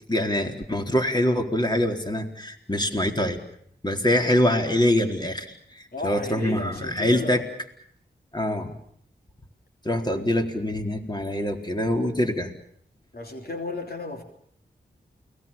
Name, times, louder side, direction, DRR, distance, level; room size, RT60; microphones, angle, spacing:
voice 1, 0.1-3.4 3.8-7.4 8.3-8.7 9.8-12.5, left 1 dB, 20° left, 4.1 m, -24 dB
voice 2, 5.9-7.5 10.1-10.3 13.1-14.2, left 3 dB, 55° left, 3.3 m, -34 dB
29.5 x 20.5 x 7.2 m
cardioid pair, 45°, 19 cm